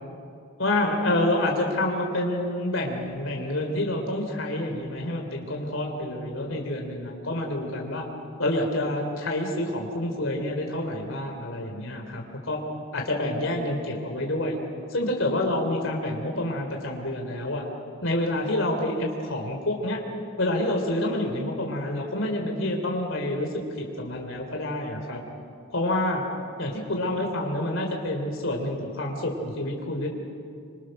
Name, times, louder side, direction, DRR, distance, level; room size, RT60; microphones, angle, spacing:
voice 1, 0.6-8.1 8.4-12.6 12.9-14.6 14.9-17.6 18.0-20.0 20.4-23.5 24.0-25.2 25.7-26.2 26.6-30.1, left 1 dB, 70° left, 2 dB, 3.3 m, -28 dB
26.0 x 25.0 x 6.5 m, 2.5 s
head